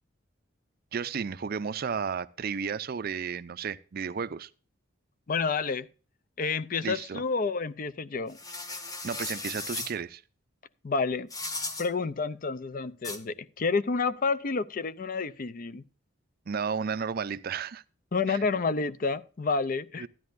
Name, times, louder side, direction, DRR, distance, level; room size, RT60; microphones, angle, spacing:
voice 1, 0.9-4.5 6.8-7.2 9.0-10.2 16.5-17.8 18.3-18.4 20.0-20.1, right 6 dB, 50° right, 0.4 m, -33 dB
voice 2, 5.3-5.9 6.4-8.4 10.8-11.3 11.8-15.8 18.1-20.1, left 4 dB, 45° left, 0.5 m, -29 dB
sound 1, 8.3-9.9 11.3-11.9 13.0-13.2, left 3 dB, 20° left, 1.1 m, -36 dB
12.5 x 10.5 x 2.5 m
head